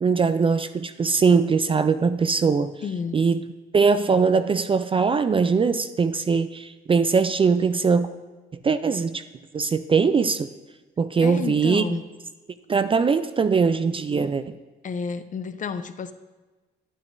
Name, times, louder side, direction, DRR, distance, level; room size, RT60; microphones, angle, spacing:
voice 1, 0.0-2.7 3.1-3.4 3.7-8.1 8.6-9.2 9.5-10.5 11.0-11.9 12.7-14.4, right 5 dB, 25° right, 12 dB, 0.3 m, -21 dB
voice 2, 2.8-3.2 11.2-12.1 14.8-16.1, left 6 dB, 40° left, 11 dB, 0.5 m, -31 dB
10.0 x 8.9 x 2.6 m, 1.2 s
cardioid pair, 90°, 20 cm